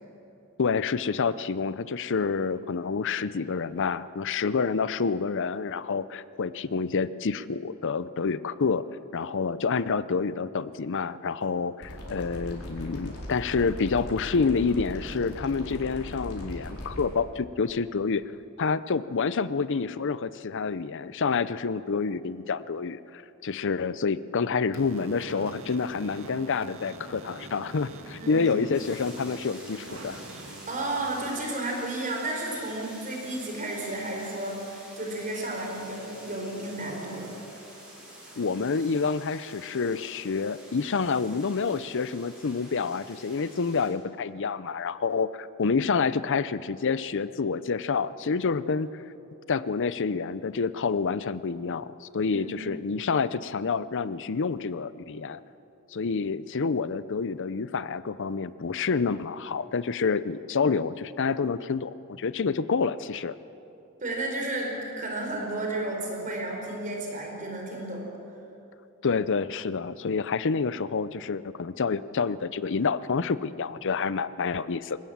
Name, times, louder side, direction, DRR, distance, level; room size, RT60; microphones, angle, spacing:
voice 1, 0.6-8.8 9.1-18.2 18.6-30.2 38.4-49.0 49.5-55.4 55.9-63.3 69.0-75.0, left 5 dB, 60° left, 16 dB, 0.6 m, -28 dB
sound 1, 11.8-17.0, equal, 85° left, 4.7 m, -39 dB
sound 2, 24.7-31.3, right 2 dB, 65° right, 1.8 m, -44 dB
sound 3, 28.7-43.9, equal, 5° right, 7.1 m, -48 dB
voice 2, 30.7-37.3 52.3-52.5 64.0-68.0, right 2 dB, 40° right, 0 dB, 4.8 m, -32 dB
21.5 x 19.5 x 7.4 m, 2.9 s
head